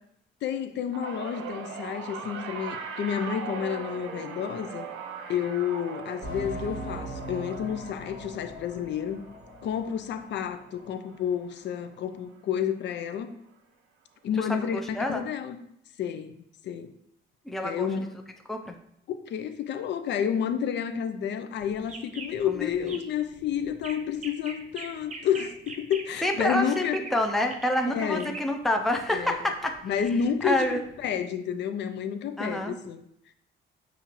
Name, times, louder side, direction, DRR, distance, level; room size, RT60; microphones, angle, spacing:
voice 1, 0.4-4.9 5.3-9.2 9.6-13.3 14.2-15.6 16.0-16.9 17.6-18.1 19.1-27.0 27.9-28.4 29.1-29.4 29.8-33.0, left 8 dB, 65° left, 10 dB, 0.4 m, -30 dB
sound 1, 0.9-11.4 11.7-12.1 13.2-13.3, right 6 dB, 90° right, 0.5 m, -40 dB
sound 2, 6.2-10.5 10.8-10.9 11.5-11.6, equal, 45° left, 1.0 m, -40 dB
voice 2, 14.4-15.2 17.4-17.9 18.5-18.8 22.4-22.9 26.2-29.7 30.4-30.8 32.4-32.8, left 1 dB, ahead, 3 dB, 0.4 m, -28 dB
sound 3, 21.6-31.2, right 4 dB, 35° right, 0.7 m, -43 dB
5.5 x 2.5 x 2.9 m, 0.74 s
cardioid pair, 90°, 20 cm